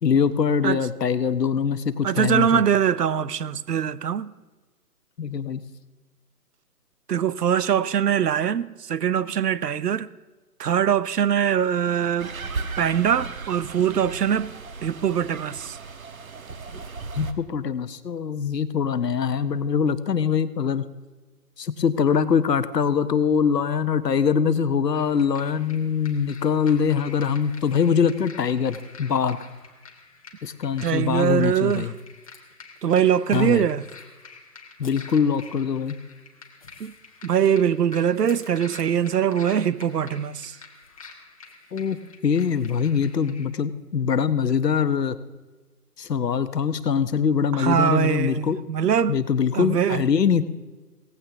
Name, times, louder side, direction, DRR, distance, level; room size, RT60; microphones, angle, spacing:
voice 1, 0.0-2.6 5.2-5.6 17.2-20.8 21.6-29.4 30.4-31.9 33.3-33.7 34.8-36.0 41.7-42.0 42.2-45.2 46.0-48.6 49.1-50.4, left 6 dB, 80° left, 1.1 m, -23 dB
voice 2, 2.0-4.3 7.1-10.1 10.6-12.3 12.8-15.8 30.8-31.9 32.8-33.8 36.8-36.9 37.2-40.6 47.5-49.2 49.5-50.0, right 8 dB, 75° right, 0.8 m, -22 dB
sound 1, 12.2-17.3, right 4 dB, 60° right, 1.3 m, -36 dB
sound 2, 24.9-43.5, left 5 dB, 20° left, 1.0 m, -47 dB
17.5 x 15.5 x 3.5 m
hypercardioid pair, 165°, 48 cm